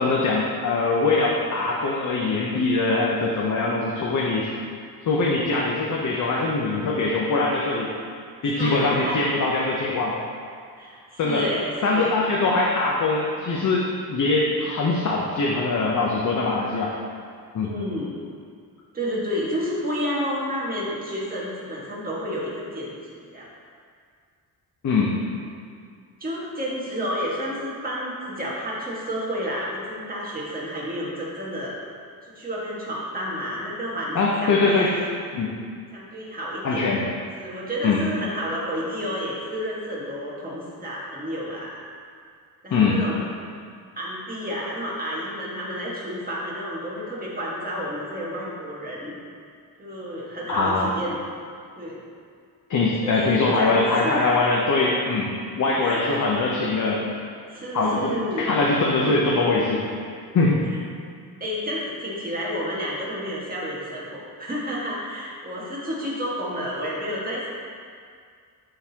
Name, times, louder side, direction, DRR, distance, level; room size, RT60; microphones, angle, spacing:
voice 1, 0.0-4.5 5.0-7.9 8.4-10.2 11.2-11.5 11.8-16.9 17.5-17.7 24.8-25.2 34.1-34.9 35.3-35.5 36.6-37.1 37.8-38.0 42.7-43.0 50.5-50.9 52.7-55.3 55.6-57.1 57.7-59.8 60.3-60.6, left 3 dB, 50° left, -3 dB, 0.8 m, -22 dB
voice 2, 8.5-9.2 10.8-12.1 17.6-18.2 18.9-23.5 26.2-31.8 32.2-35.1 35.9-36.8 37.4-41.8 42.6-43.3 43.9-49.1 49.8-51.2 51.8-52.0 53.0-54.4 55.8-56.2 57.5-58.5 61.4-67.5, equal, 20° right, -6 dB, 1.7 m, -30 dB
11.5 x 3.9 x 2.9 m, 2.2 s
cardioid pair, 125°, 39 cm